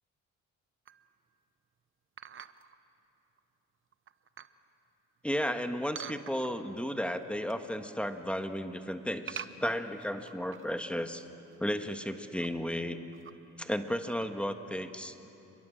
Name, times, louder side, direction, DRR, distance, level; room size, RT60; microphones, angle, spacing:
sound 1, 0.9-1.2 2.2-2.8 3.4-3.5 3.9-4.6 6.0-6.8 7.2-7.7 8.0-8.4 9.3-10.8 11.2-11.3 11.5-11.6 12.2-12.5 13.1-13.6 14.0-14.3, right 8 dB, 40° right, 0.9 m, -46 dB
voice 1, 5.2-11.2 11.6-13.0 13.6-15.1, equal, 5° left, 7 dB, 1.5 m, -34 dB
27.5 x 22.0 x 7.7 m, 2.9 s
cardioid pair, 90°, 30 cm